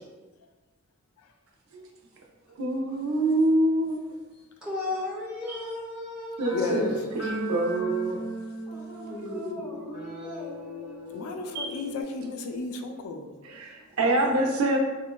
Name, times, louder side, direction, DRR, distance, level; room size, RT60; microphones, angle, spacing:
voice 1, 2.5-4.0 5.5-5.6 6.4-8.2 8.9-9.3 11.5-11.8 13.4-14.8, right 2 dB, 80° right, 1 dB, 0.5 m, -26 dB
voice 2, 4.6-6.7 8.7-11.2 14.1-14.3, left 2 dB, 5° right, -7 dB, 0.6 m, -37 dB
sound 1, 6.4-12.0, equal, 65° left, 1.1 m, -36 dB
voice 3, 6.5-6.9 11.1-13.3, left 3 dB, 85° left, 6 dB, 0.3 m, -33 dB
3.7 x 2.1 x 2.2 m, 1.3 s
head